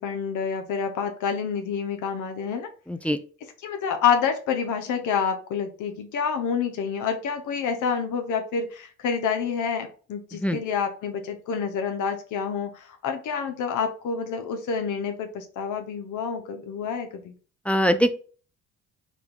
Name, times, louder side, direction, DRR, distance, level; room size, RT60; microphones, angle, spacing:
voice 1, 0.0-2.7 3.6-17.3, left 6 dB, 80° left, 6 dB, 0.7 m, -28 dB
voice 2, 2.9-3.2 10.4-10.6 17.7-18.1, equal, 5° left, 10 dB, 0.3 m, -22 dB
5.0 x 2.3 x 3.6 m, 0.39 s
cardioid pair, 90°, 30 cm